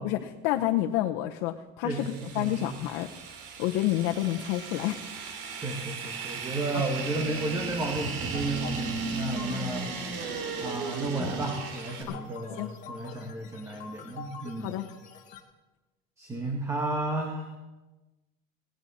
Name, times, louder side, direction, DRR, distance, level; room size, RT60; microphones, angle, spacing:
voice 1, 0.0-3.1 3.6-5.0 9.2-9.3 12.1-12.2 12.6-12.7 14.6-14.9, left 14 dB, 90° left, 4 dB, 0.9 m, -29 dB
voice 2, 1.8-2.7 5.6-9.9 10.3-14.8 16.2-17.5, right 2 dB, 15° right, 2 dB, 1.5 m, -33 dB
sound 1, 1.9-12.0, right 4 dB, 60° right, 2.8 m, -36 dB
sound 2, 7.4-15.4, left 6 dB, 35° left, 1.8 m, -46 dB
18.0 x 18.0 x 4.2 m, 1.1 s
cardioid pair, 180°, 21 cm